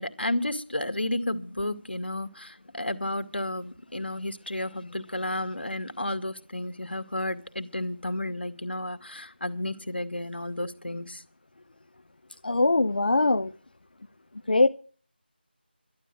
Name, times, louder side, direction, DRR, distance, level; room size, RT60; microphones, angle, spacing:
voice 1, 0.0-11.2, left 1 dB, 80° left, 2.1 m, -32 dB
voice 2, 12.4-13.5 14.5-14.7, left 2 dB, 55° left, 0.7 m, -21 dB
12.0 x 11.5 x 7.7 m
figure-of-eight pair, 170°, 6 cm